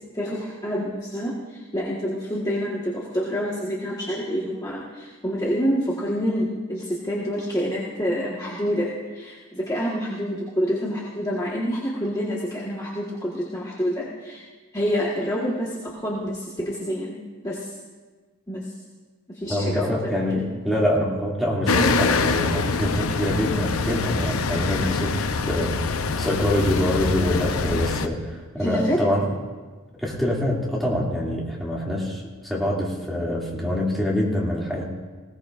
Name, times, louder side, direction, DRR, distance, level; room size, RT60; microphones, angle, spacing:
voice 1, 0.1-8.9 9.1-14.4 14.7-17.2 17.4-17.7 18.5-18.7 19.3-20.5 21.7-21.9 28.6-29.0, equal, 15° left, -5 dB, 1.5 m, -27 dB
voice 2, 19.5-29.3 30.0-34.9, left 1 dB, ahead, -5 dB, 2.5 m, -25 dB
sound 1, 21.7-28.1, left 4 dB, 80° left, 0.7 m, -24 dB
20.0 x 17.5 x 2.5 m, 1.4 s
head